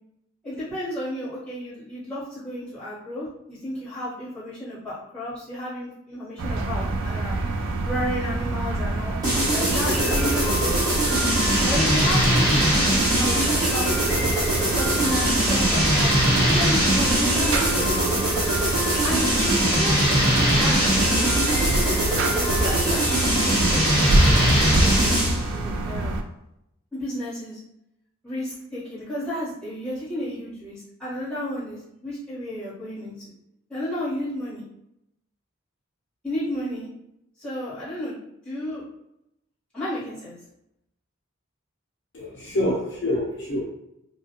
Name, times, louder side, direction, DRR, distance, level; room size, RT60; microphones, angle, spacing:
voice 1, 0.4-9.1 9.5-18.3 19.0-21.9 22.2-26.1 26.9-27.6 28.2-33.3 33.7-34.6 36.2-36.9 37.4-38.2 38.4-38.8 39.7-40.3, left 1 dB, 5° left, -11 dB, 1.2 m, -33 dB
sound 1, 6.4-26.2, right 2 dB, 70° right, 0.3 m, -26 dB
sound 2, 9.2-25.4, right 1 dB, 15° right, 1.0 m, -22 dB
sound 3, 9.7-24.5, left 1 dB, 45° right, 0.7 m, -34 dB
voice 2, 42.1-43.7, left 1 dB, 55° left, -4 dB, 0.6 m, -26 dB
2.4 x 2.3 x 2.9 m, 0.81 s
head